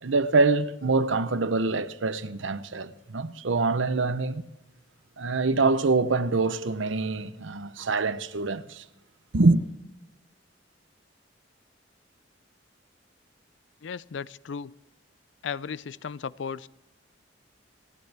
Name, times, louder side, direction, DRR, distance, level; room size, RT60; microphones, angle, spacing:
voice 1, 0.0-4.4 5.2-8.8 9.3-9.6, right 3 dB, 80° right, 0.8 m, -25 dB
voice 2, 13.8-14.7 15.4-16.7, left 6 dB, 70° left, 0.4 m, -35 dB
27.5 x 10.5 x 3.5 m
head